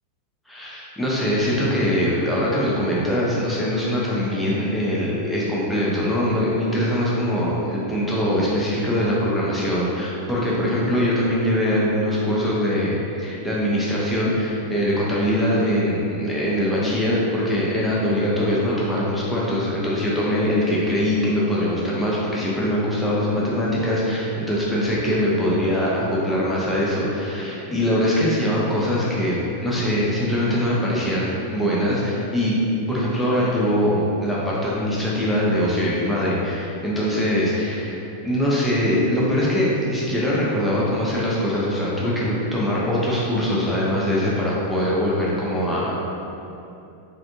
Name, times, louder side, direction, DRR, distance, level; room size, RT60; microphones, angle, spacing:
voice 1, 0.5-32.6 32.9-46.0, equal, 5° left, -7 dB, 0.7 m, -22 dB
3.3 x 2.5 x 2.7 m, 2.8 s
figure-of-eight pair, 90°, 0 cm